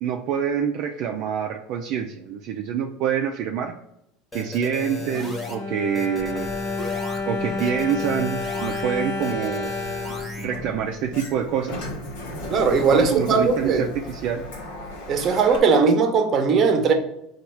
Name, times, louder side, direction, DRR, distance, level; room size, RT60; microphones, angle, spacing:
voice 1, 0.0-3.7 4.3-6.5 7.3-9.7 10.4-11.9 12.9-14.5, right 8 dB, 60° right, 0.4 m, -26 dB
sound 1, 4.3-5.6 5.9-7.2 7.6-8.8 9.2-10.5, left 2 dB, 15° left, 1.1 m, -35 dB
Bowed string instrument, 5.0-11.2 11.9-12.0 12.3-12.4, left 3 dB, 55° left, 0.7 m, -31 dB
Sliding door, 6.2-15.6, left 1 dB, 85° left, 0.9 m, -38 dB
voice 2, 12.5-13.9 15.1-16.9, right 5 dB, 40° right, 0.8 m, -19 dB
4.2 x 2.4 x 4.5 m
supercardioid pair, 115°, 0 cm